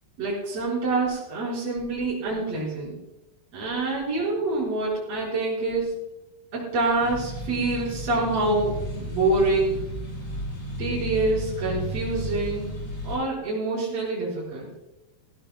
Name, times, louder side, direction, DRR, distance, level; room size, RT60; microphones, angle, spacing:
voice 1, 0.2-3.0 3.5-6.0 6.5-9.8 10.8-12.7 13.0-14.7, right 2 dB, 45° right, -7 dB, 5.7 m, -26 dB
sound 1, 7.0-13.2, right 1 dB, 30° left, 5.6 m, -33 dB
20.0 x 16.0 x 2.2 m, 0.94 s
omnidirectional pair, 4.3 m